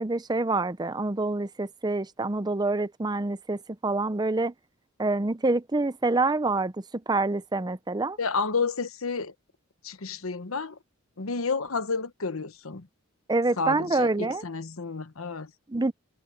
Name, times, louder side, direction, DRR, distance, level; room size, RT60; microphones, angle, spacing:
voice 1, 0.0-4.5 5.0-6.7 7.1-8.2 13.3-14.4 15.7-15.9, right 2 dB, 20° right, 0.6 m, -26 dB
voice 2, 8.2-9.3 9.8-10.8 11.2-12.9 13.6-15.5, left 4 dB, 75° left, 1.1 m, -30 dB
head